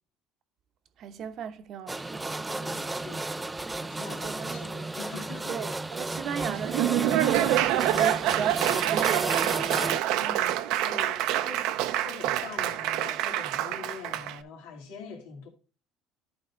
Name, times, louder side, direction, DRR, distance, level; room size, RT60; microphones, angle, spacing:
voice 1, 1.0-2.3 4.2-4.8 5.5-9.9, right 8 dB, 50° right, 0.8 m, -37 dB
sound 1, 1.9-10.0, right 2 dB, 10° right, 0.3 m, -33 dB
voice 2, 2.5-3.3 3.8-5.8 10.2-11.7 12.0-15.5, left 5 dB, 90° left, 2.1 m, -44 dB
Laughter / Applause, 6.5-14.4, right 12 dB, 70° right, 0.6 m, -26 dB
11.5 x 4.0 x 4.3 m
cardioid pair, 130°, 0 cm